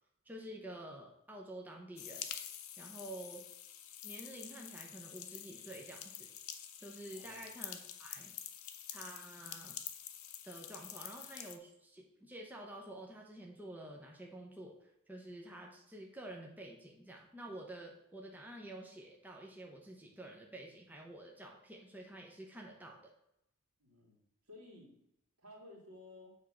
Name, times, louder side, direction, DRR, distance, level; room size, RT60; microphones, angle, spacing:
voice 1, 0.2-2.3 2.8-3.4 4.0-6.3 6.8-8.3 8.9-9.8 10.4-23.0, right 1 dB, 10° right, 0 dB, 0.8 m, -49 dB
sound 1, 2.0-11.6, left 10 dB, 65° left, 0.7 m, -47 dB
voice 2, 7.1-7.5 23.8-24.9 25.4-26.4, left 2 dB, 70° right, -1 dB, 2.2 m, -55 dB
7.2 x 3.6 x 6.2 m, 0.79 s
head